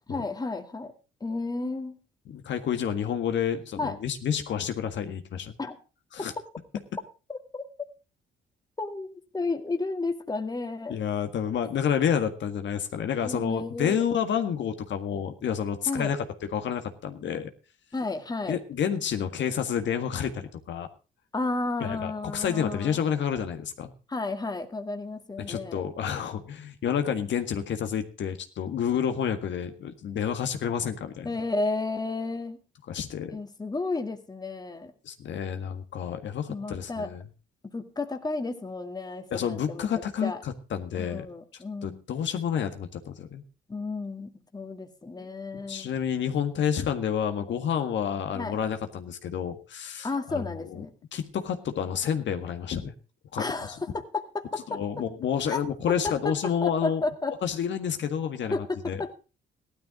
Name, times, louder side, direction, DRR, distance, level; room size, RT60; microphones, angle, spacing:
voice 1, 0.1-0.9 1.2-2.0 3.8-4.0 5.6-5.8 7.3-7.6 8.8-11.0 13.2-14.0 15.9-16.2 17.9-18.5 21.3-23.0 24.1-25.8 31.2-32.6 33.3-34.9 36.5-37.1 37.7-39.9 40.2-40.4 40.9-42.0 43.7-45.9 48.3-48.6 50.0-50.9 53.4-54.8 55.5-55.6 56.0-57.4 58.5-59.1, left 3 dB, 20° left, 6 dB, 2.0 m, -32 dB
voice 2, 2.3-5.5 6.1-6.3 10.9-16.2 16.5-17.5 18.5-20.9 21.8-23.9 25.4-31.3 32.9-33.4 35.0-37.2 39.3-41.2 41.8-43.4 45.2-45.3 45.7-50.8 51.1-52.9 53.3-53.4 54.7-57.0 57.4-58.6 58.8-59.0, left 8 dB, 65° left, 7 dB, 1.7 m, -29 dB
16.0 x 12.5 x 3.7 m, 0.34 s
cardioid pair, 90°, 20 cm